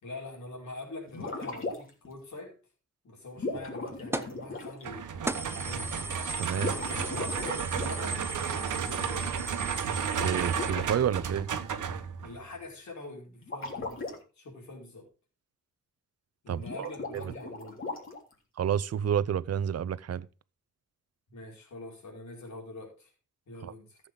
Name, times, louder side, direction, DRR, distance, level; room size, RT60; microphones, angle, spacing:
voice 1, 0.0-2.6 3.0-5.9 6.5-9.5 12.2-15.0 16.4-17.8 21.3-23.1 23.5-24.0, left 2 dB, 65° left, 4.8 m, -44 dB
sound 1, 1.1-2.1 3.4-4.8 6.5-8.0 10.1-10.9 13.4-14.2 16.6-18.3, left 2 dB, 40° left, 3.2 m, -37 dB
sound 2, 4.1-4.4 4.8-4.9 5.3-10.7, right 1 dB, 10° right, 0.7 m, -38 dB
sound 3, 4.8-12.5, right 7 dB, 75° right, 1.1 m, -33 dB
voice 2, 6.4-6.7 10.2-11.5 16.5-17.2 18.6-20.3 23.6-23.7, right 9 dB, 55° right, 0.6 m, -29 dB
14.0 x 7.5 x 3.8 m
wide cardioid pair, 120°, 31 cm